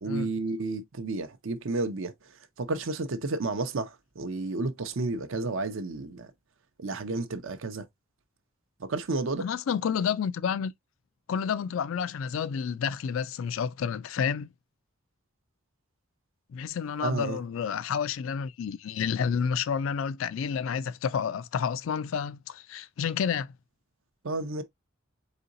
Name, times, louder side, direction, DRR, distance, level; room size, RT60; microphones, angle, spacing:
voice 1, 0.0-2.1 2.6-6.3 6.8-7.9 8.8-9.4 17.0-17.4 24.2-24.6, right 3 dB, 65° right, 0.6 m, -31 dB
voice 2, 9.4-10.7 11.3-14.5 16.5-23.5, left 7 dB, 70° left, 0.3 m, -30 dB
4.1 x 3.8 x 2.5 m
head